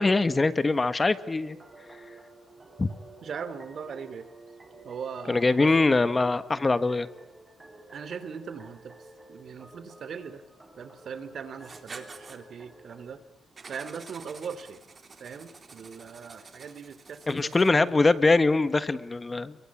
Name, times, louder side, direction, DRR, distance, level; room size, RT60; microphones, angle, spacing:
voice 1, 0.0-1.6 2.8-2.9 5.3-7.1 17.3-19.5, left 3 dB, 25° left, 13 dB, 1.4 m, -23 dB
sound 1, 1.3-13.2, right 2 dB, 15° right, 5.0 m, -51 dB
voice 2, 3.2-4.3 4.8-5.8 7.9-8.9 9.3-10.4 10.8-13.2 13.7-14.8 15.2-17.8, right 6 dB, 60° right, 13 dB, 3.0 m, -39 dB
Writing, 11.6-12.4 13.6-17.9, right 4 dB, 35° right, 3.5 m, -48 dB
29.5 x 23.0 x 8.6 m, 0.90 s
wide cardioid pair, 135°, 0 cm